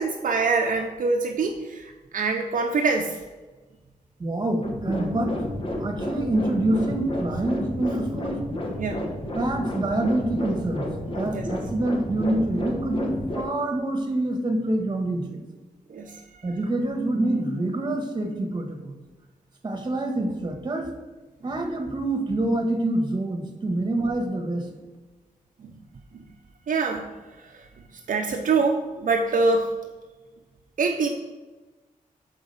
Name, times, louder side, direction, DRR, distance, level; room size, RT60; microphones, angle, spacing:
voice 1, 0.0-3.2 8.8-9.1 11.3-11.4 15.9-16.2 25.6-25.7 26.7-27.1 27.5-27.6 28.1-29.7 30.8-31.1, right 4 dB, 65° right, 2 dB, 0.7 m, -24 dB
voice 2, 4.2-8.4 9.3-10.9 11.1-15.4 16.4-18.9 19.6-20.9 21.4-24.7, right 1 dB, 30° right, 5 dB, 1.4 m, -26 dB
sound 1, 4.6-13.4, left 1 dB, 40° left, 1.3 m, -31 dB
6.3 x 4.9 x 5.5 m, 1.2 s
cardioid pair, 80°, 14 cm